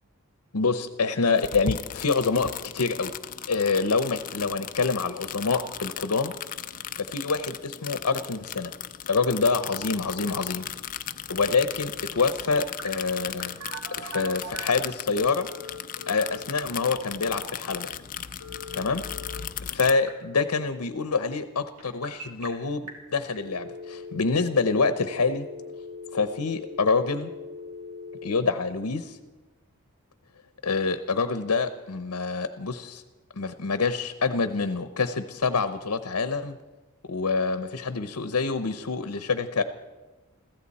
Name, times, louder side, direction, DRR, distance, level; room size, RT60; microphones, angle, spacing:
voice 1, 0.5-3.1 3.5-6.3 7.0-8.7 9.1-10.7 11.3-13.6 13.9-15.5 16.1-18.0 18.7-19.0 19.7-25.5 26.1-27.3 28.2-29.2 30.6-33.0 33.4-36.6 37.1-39.6, left 4 dB, 75° left, 10 dB, 0.9 m, -26 dB
sound 1, 1.4-19.9, left 9 dB, 40° left, 0.5 m, -37 dB
Telephone, 12.8-14.9 15.4-16.4 18.4-19.4 19.7-20.1 21.8-22.5 22.9-23.0 23.3-28.4, left 2 dB, 80° right, 3.0 m, -40 dB
22.0 x 15.5 x 4.2 m, 1.2 s
head